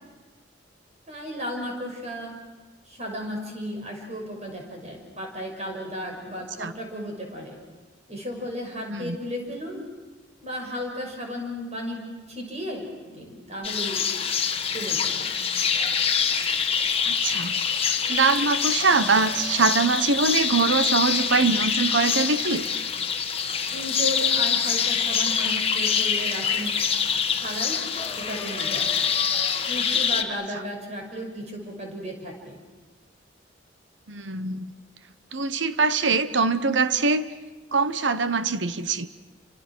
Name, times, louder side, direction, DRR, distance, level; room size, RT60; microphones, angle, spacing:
voice 1, 1.1-2.3 2.9-7.6 8.1-9.8 10.4-14.0 14.7-15.3 23.7-26.7 27.3-27.8 28.2-28.9 29.7-32.6, equal, 35° right, 1 dB, 6.1 m, -34 dB
sound 1, 13.6-30.2, left 7 dB, 30° left, 1.6 m, -25 dB
voice 2, 17.1-17.5 18.1-22.6 34.1-34.7 35.3-37.2 37.7-39.1, right 4 dB, 75° right, 12 dB, 1.1 m, -23 dB
29.5 x 26.5 x 6.3 m, 1.2 s
head